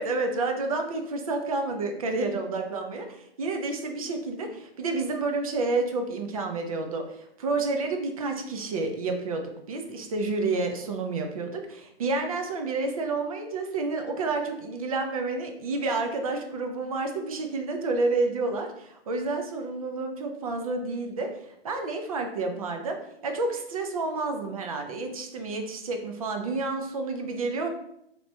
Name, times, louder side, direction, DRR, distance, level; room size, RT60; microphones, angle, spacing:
voice 1, 0.0-23.0 23.2-27.7, right 3 dB, 35° right, 4 dB, 0.4 m, -30 dB
3.3 x 2.8 x 2.6 m, 0.77 s
hypercardioid pair, 155°, 31 cm